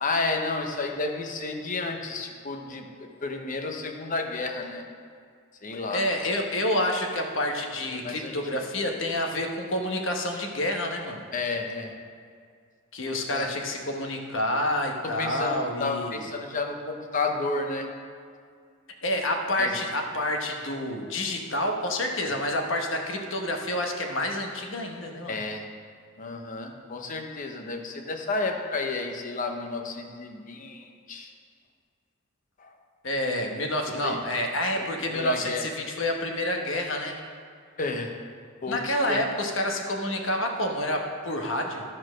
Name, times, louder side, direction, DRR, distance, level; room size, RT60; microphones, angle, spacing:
voice 1, 0.0-4.8 5.6-6.0 7.9-8.3 11.3-11.9 13.0-13.5 15.0-17.9 19.6-19.8 22.3-22.4 25.3-25.7 26.2-31.3 32.6-32.7 34.0-34.2 34.8-34.9 35.1-35.6 37.8-38.1 38.6-39.2, left 3 dB, 40° left, 3 dB, 0.8 m, -31 dB
voice 2, 5.7-11.2 12.9-16.2 19.0-25.4 33.0-37.2 38.7-41.8, left 1 dB, 65° left, 2 dB, 1.1 m, -28 dB
13.0 x 4.3 x 6.3 m, 2.1 s
head